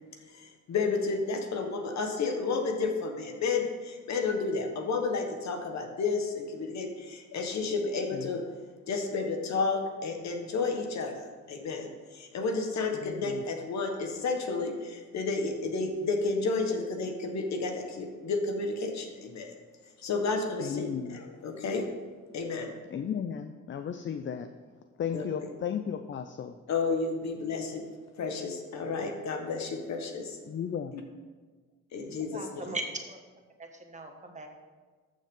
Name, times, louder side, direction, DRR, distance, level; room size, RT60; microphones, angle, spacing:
voice 1, 0.7-3.7 4.1-6.9 7.3-8.4 8.9-11.1 11.5-11.9 12.3-14.7 15.1-19.5 20.0-21.8 22.3-22.7 25.1-25.5 26.7-27.8 28.2-30.2 31.9-32.4 32.7-32.8, left 4 dB, 65° left, 4 dB, 1.5 m, -31 dB
voice 2, 8.1-8.5 13.0-13.4 20.6-21.2 22.9-24.5 25.0-26.6 30.5-31.0, left 8 dB, 40° left, 8 dB, 0.5 m, -35 dB
voice 3, 32.3-33.2 33.6-34.5, right 2 dB, 25° right, 3 dB, 1.4 m, -38 dB
13.5 x 6.5 x 3.8 m, 1.4 s
cardioid pair, 90°, 30 cm